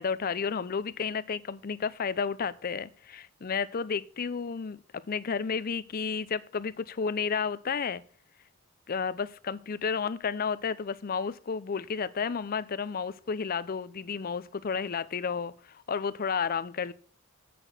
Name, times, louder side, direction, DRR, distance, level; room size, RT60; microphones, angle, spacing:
voice 1, 0.0-8.0 8.9-16.9, left 6 dB, 45° left, 0.5 m, -32 dB
8.2 x 5.9 x 6.6 m
head